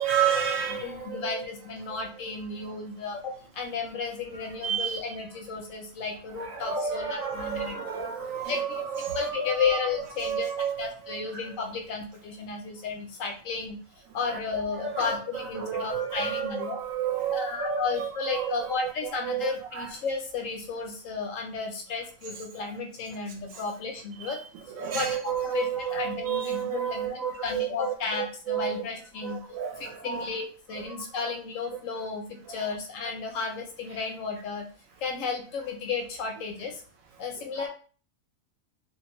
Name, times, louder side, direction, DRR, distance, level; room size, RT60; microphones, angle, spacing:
voice 1, 0.0-1.5 1.9-2.0 4.6-5.0 6.4-9.8 10.2-11.4 14.2-14.4 14.7-19.9 24.2-24.4 24.7-28.7 29.2-30.4 32.5-32.7 37.6-37.7, right 8 dB, 70° right, 2 dB, 1.0 m, -31 dB
voice 2, 0.7-7.8 8.5-8.8 9.1-10.5 10.8-13.8 14.1-16.8 17.3-24.4 24.9-25.1 25.4-29.5 30.0-34.6 35.0-36.8 37.2-37.7, left 5 dB, 70° left, 3 dB, 0.9 m, -33 dB
2.5 x 2.4 x 2.9 m, 0.40 s
omnidirectional pair, 1.5 m